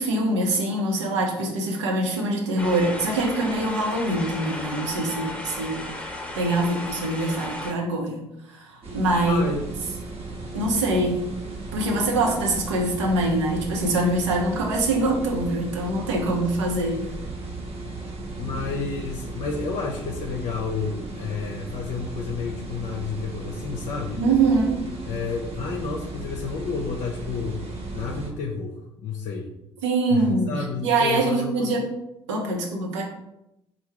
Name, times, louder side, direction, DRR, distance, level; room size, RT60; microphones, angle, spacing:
voice 1, 0.0-5.9 6.3-9.4 10.5-11.2 11.7-17.1 24.1-24.9 29.8-31.9 32.3-33.0, right 2 dB, 75° right, 0 dB, 0.9 m, -24 dB
sound 1, 2.6-7.7, left 1 dB, 10° left, 1.0 m, -34 dB
sound 2, 8.8-28.3, right 2 dB, 40° right, 1.1 m, -36 dB
voice 2, 9.3-9.7 18.4-24.2 25.1-27.6 27.9-29.6 30.1-31.7, left 5 dB, 55° left, 1 dB, 0.6 m, -30 dB
4.5 x 2.3 x 4.5 m, 0.86 s
figure-of-eight pair, 55°, 15 cm